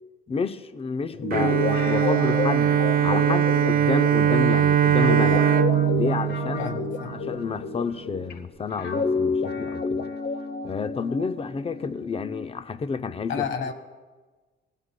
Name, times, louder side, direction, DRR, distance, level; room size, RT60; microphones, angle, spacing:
voice 1, 0.3-2.8 3.0-5.4 5.9-6.7 7.1-10.1 10.6-13.5, left 5 dB, 30° left, 0.6 m, -30 dB
Guitar, 1.1-8.3 8.8-12.5, left 4 dB, 55° left, 0.9 m, -30 dB
Bowed string instrument, 1.3-7.5, right 10 dB, 45° right, 0.4 m, -21 dB
voice 2, 6.6-7.1 13.3-13.7, left 7 dB, 70° left, 1.3 m, -30 dB
19.5 x 16.0 x 2.2 m
cardioid pair, 90°, 20 cm